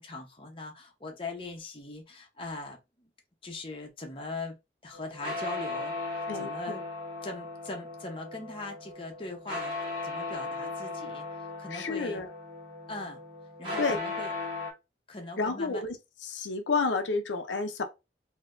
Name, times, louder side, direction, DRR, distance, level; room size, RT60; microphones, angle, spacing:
voice 1, 0.0-3.1 3.4-4.6 4.8-5.9 6.3-6.8 7.2-9.7 10.0-12.2 12.9-13.2 13.6-14.3 15.1-15.8, left 2 dB, 30° left, 0.9 m, -40 dB
sound 1, 4.9-14.7, left 3 dB, 30° right, 1.5 m, -37 dB
voice 2, 11.7-12.3 13.8-14.0 15.4-16.0 16.2-17.8, left 4 dB, 85° left, 0.6 m, -30 dB
4.2 x 2.8 x 2.6 m
head